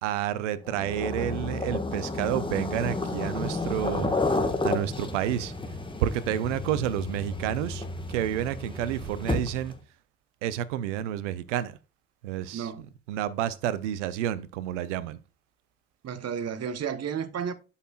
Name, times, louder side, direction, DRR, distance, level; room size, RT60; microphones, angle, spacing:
voice 1, 0.0-5.5 6.0-9.7 10.4-11.7 12.2-12.7 13.1-15.2, right 11 dB, 75° right, 0.7 m, -30 dB
sound 1, 0.7-9.8, left 2 dB, 15° left, 1.6 m, -31 dB
voice 2, 12.5-12.9 16.0-17.5, right 7 dB, 45° right, 1.1 m, -32 dB
12.0 x 5.6 x 2.4 m
figure-of-eight pair, 50°, 36 cm